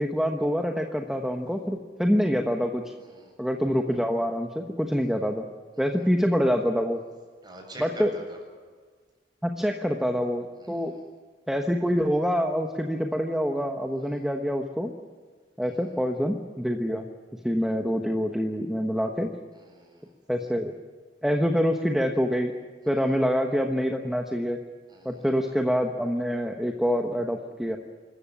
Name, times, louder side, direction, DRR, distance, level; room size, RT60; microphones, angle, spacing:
voice 1, 0.0-2.9 3.4-5.5 5.8-7.0 7.8-8.1 9.4-10.9 11.5-14.9 15.6-17.0 17.4-19.3 20.3-20.7 21.2-22.5 22.9-24.6 25.0-27.8, equal, 5° right, 3 dB, 1.1 m, -26 dB
voice 2, 3.0-3.3 5.8-5.9 7.4-8.4 10.6-11.0 14.0-14.2 15.6-15.9 19.5-20.1 22.8-23.0 24.9-25.3, right 1 dB, 25° right, 1 dB, 7.3 m, -46 dB
26.0 x 14.5 x 9.9 m, 1.5 s
head